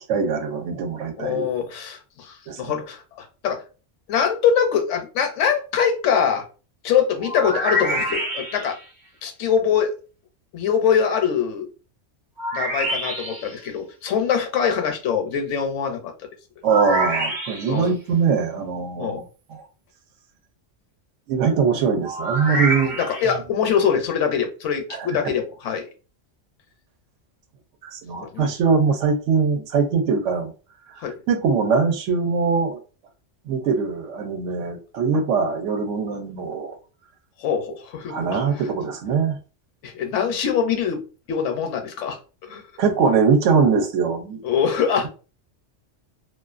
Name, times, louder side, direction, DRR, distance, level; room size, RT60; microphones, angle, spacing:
voice 1, 0.0-1.5 2.5-2.7 16.6-19.2 19.5-19.6 21.3-23.0 24.9-25.3 27.8-30.5 31.3-32.8 33.5-36.7 38.1-39.4 42.8-44.4, right 5 dB, 80° right, 0.9 m, -22 dB
voice 2, 1.2-3.6 4.1-6.4 6.8-8.8 9.2-9.9 10.5-11.7 12.5-16.1 17.7-17.9 19.0-19.2 22.7-25.9 28.3-28.5 31.0-31.2 36.1-36.2 37.4-38.7 39.8-41.0 41.3-42.6 44.4-45.1, left 7 dB, 75° left, 0.9 m, -23 dB
sound 1, 7.2-8.9 12.4-13.6 16.7-17.9 22.0-23.4, right 1 dB, 45° right, 0.8 m, -26 dB
2.4 x 2.3 x 2.4 m
omnidirectional pair, 1.3 m